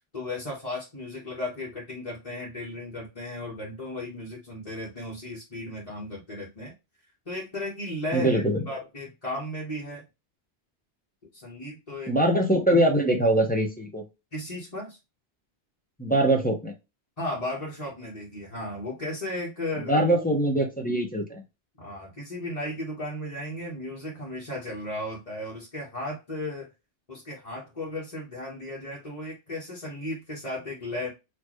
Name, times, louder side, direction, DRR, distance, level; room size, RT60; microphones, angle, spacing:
voice 1, 0.1-6.7 7.2-10.0 11.3-12.1 14.3-15.0 17.2-20.0 21.8-26.7 27.1-31.1, left 1 dB, 35° left, -7 dB, 1.6 m, -35 dB
voice 2, 8.1-8.6 12.1-14.0 16.0-16.7 19.8-21.4, right 1 dB, 10° left, 1 dB, 1.0 m, -23 dB
4.1 x 3.1 x 3.1 m, 0.25 s
omnidirectional pair, 1.2 m